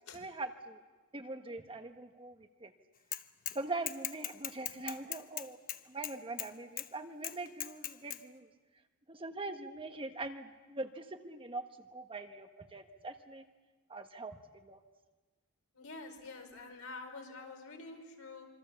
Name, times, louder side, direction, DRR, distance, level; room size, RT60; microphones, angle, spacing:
voice 1, 0.1-0.8 1.1-2.7 3.5-5.6 5.8-8.5 9.1-11.6 11.9-13.4 13.9-14.8, right 2 dB, 25° right, 6 dB, 1.4 m, -42 dB
Bicycle / Mechanisms, 3.1-3.6 3.9-6.5 6.8-6.9 7.2-8.2, left 11 dB, 40° left, 0.9 m, -39 dB
voice 2, 15.7-18.5, left 3 dB, 70° left, 4 dB, 4.8 m, -47 dB
27.0 x 25.0 x 7.1 m, 1.3 s
head